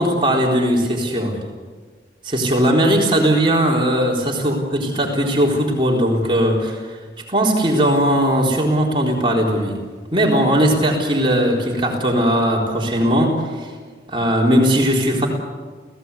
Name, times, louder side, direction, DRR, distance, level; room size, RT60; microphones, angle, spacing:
voice 1, 0.0-1.4 2.2-7.0 7.3-9.8 10.1-13.7 14.1-15.3, equal, 30° right, -1 dB, 4.0 m, -18 dB
29.5 x 16.5 x 8.4 m, 1.5 s
head